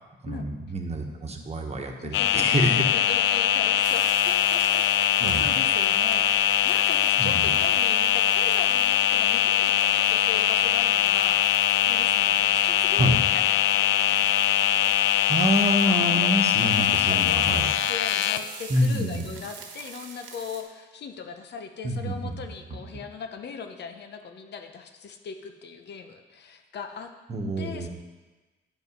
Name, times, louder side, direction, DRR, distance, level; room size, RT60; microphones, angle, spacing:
voice 1, 0.2-2.8 5.2-5.5 7.2-7.5 12.9-13.2 15.2-17.7 18.7-19.3 21.8-22.3 27.3-27.9, right 1 dB, 35° right, 3 dB, 1.3 m, -27 dB
voice 2, 2.0-15.2 16.1-16.3 16.8-17.6 17.9-27.1 27.6-27.9, left 6 dB, 60° left, 6 dB, 0.8 m, -39 dB
sound 1, 2.1-18.4, left 11 dB, 80° left, 0.4 m, -22 dB
sound 2, 3.8-20.6, right 5 dB, 70° right, 1.3 m, -45 dB
9.3 x 5.4 x 5.5 m, 1.2 s
cardioid pair, 90°, 20 cm